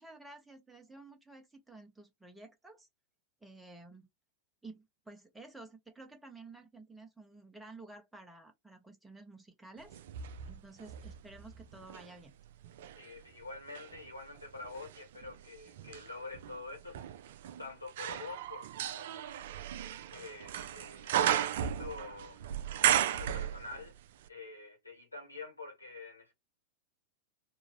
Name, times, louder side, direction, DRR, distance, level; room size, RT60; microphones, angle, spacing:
voice 1, 0.0-2.9 3.4-4.1 4.6-10.0 10.5-12.3, right 2 dB, 5° right, 0.8 m, -52 dB
sound 1, 9.9-12.1 12.6-24.0 24.3-24.4, right 10 dB, 55° right, 0.4 m, -35 dB
voice 2, 12.9-17.1 17.6-19.7 20.1-22.4 22.9-23.9 24.3-26.3, left 3 dB, 85° left, 1.5 m, -47 dB
3.6 x 2.6 x 3.1 m
figure-of-eight pair, 90°, 0 cm